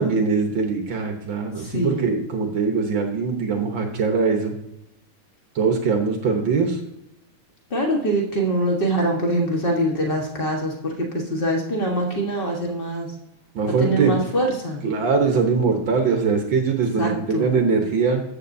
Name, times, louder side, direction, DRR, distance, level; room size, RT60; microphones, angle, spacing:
voice 1, 0.0-4.5 5.5-6.8 13.5-14.1 14.8-18.2, right 5 dB, 60° right, 3 dB, 1.2 m, -22 dB
voice 2, 1.5-2.0 7.7-13.1 13.8-14.8 17.0-17.5, right 1 dB, 60° left, 0 dB, 0.5 m, -24 dB
14.0 x 8.5 x 2.7 m, 0.86 s
omnidirectional pair, 3.5 m